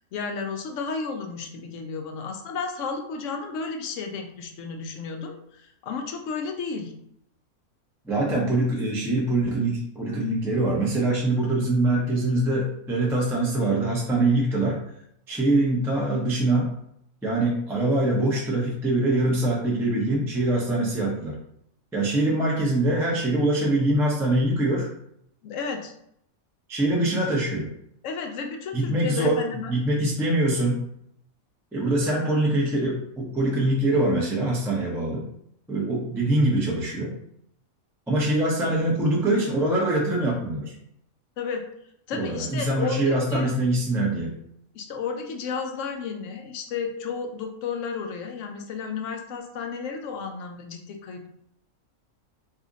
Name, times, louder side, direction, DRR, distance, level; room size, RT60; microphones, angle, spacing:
voice 1, 0.0-6.9 25.4-25.9 28.0-29.7 41.4-41.6 42.1-43.5 44.7-51.3, left 5 dB, 70° left, 3 dB, 0.8 m, -32 dB
voice 2, 8.0-14.8 15.3-16.7 17.2-21.4 21.9-24.9 26.7-27.7 28.7-29.4 29.7-30.8 31.7-35.3 35.7-37.1 38.1-40.7 42.1-44.3, right 1 dB, 5° right, -4 dB, 0.4 m, -23 dB
2.7 x 2.5 x 3.8 m, 0.72 s
omnidirectional pair, 1.5 m